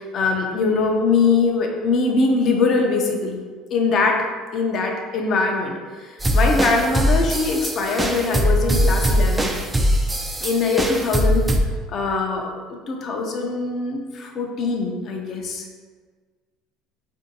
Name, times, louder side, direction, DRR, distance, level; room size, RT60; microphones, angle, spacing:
voice 1, 0.0-3.4 3.7-4.2 4.5-9.5 10.4-11.4 11.9-15.7, left 4 dB, 50° left, 1 dB, 0.6 m, -22 dB
sound 1, 6.2-11.6, equal, 15° right, 0.4 m, -21 dB
4.3 x 2.6 x 2.7 m, 1.5 s
hypercardioid pair, 80°, 0 cm